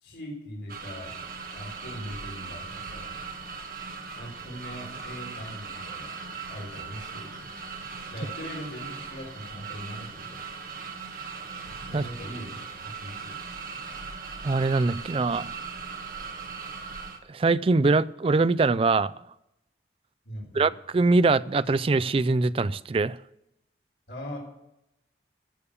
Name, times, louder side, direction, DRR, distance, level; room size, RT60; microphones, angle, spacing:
voice 1, 0.0-1.1 1.5-3.2 4.1-6.1 6.5-7.5 8.1-10.4 11.9-12.6 12.8-13.4 20.2-20.7 24.1-24.4, equal, 85° left, 3.9 m, -40 dB
sound 1, 0.7-17.2, right 5 dB, 50° right, 1.6 m, -39 dB
voice 2, 14.4-15.5 17.3-19.1 20.5-23.2, right 3 dB, 30° right, 0.3 m, -23 dB
14.0 x 6.9 x 6.9 m
head